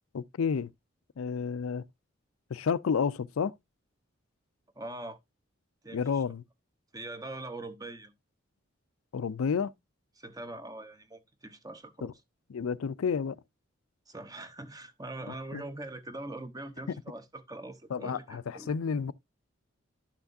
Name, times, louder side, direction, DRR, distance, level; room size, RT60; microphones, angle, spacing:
voice 1, 0.1-0.7 1.2-1.8 2.5-3.5 5.9-6.4 9.1-9.7 12.0-12.1 12.5-13.4 15.5-15.6 17.9-19.1, left 6 dB, 85° left, 0.4 m, -30 dB
voice 2, 4.8-5.2 5.8-6.2 6.9-8.1 10.2-12.1 14.1-18.7, right 2 dB, 15° right, 0.8 m, -42 dB
12.0 x 5.8 x 2.6 m
head